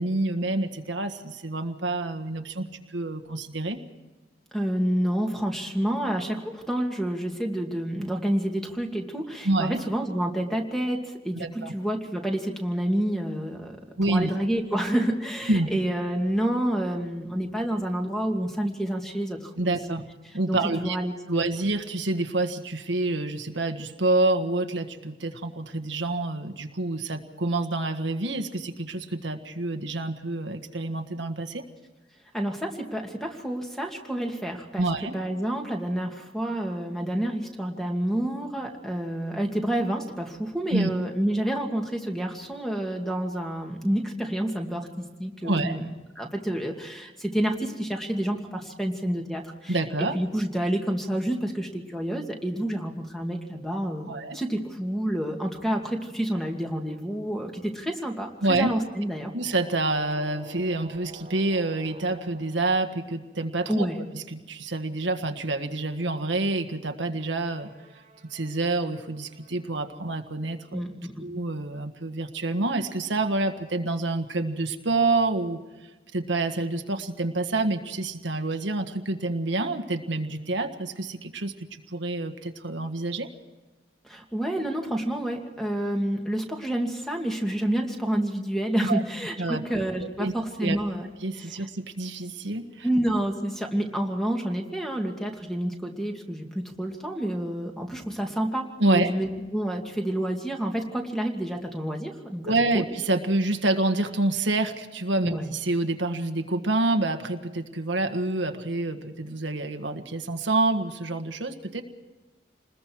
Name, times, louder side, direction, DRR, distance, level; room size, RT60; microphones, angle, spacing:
voice 1, 0.0-3.8 9.4-9.8 11.3-11.7 14.0-14.3 15.5-15.7 19.6-20.1 20.3-21.0 21.3-31.6 34.8-35.2 40.7-40.9 45.4-45.8 49.7-50.2 54.1-54.4 58.4-58.7 59.3-63.9 64.1-67.7 68.2-70.8 71.2-75.6 76.1-83.3 88.8-89.0 89.4-89.6 90.2-90.3 90.6-90.8 91.2-92.9 98.8-99.1 102.4-111.8, right 2 dB, 80° right, 7 dB, 1.6 m, -27 dB
voice 2, 4.5-13.8 14.1-19.7 20.2-21.1 32.3-45.9 46.2-59.3 63.7-64.0 70.7-71.2 84.0-91.1 91.4-91.7 92.8-102.8 105.2-105.5, right 1 dB, ahead, 2 dB, 2.4 m, -29 dB
sound 1, 59.1-63.7 67.1-69.9, right 1 dB, 35° right, 1.7 m, -50 dB
28.5 x 21.0 x 4.7 m, 1.2 s
head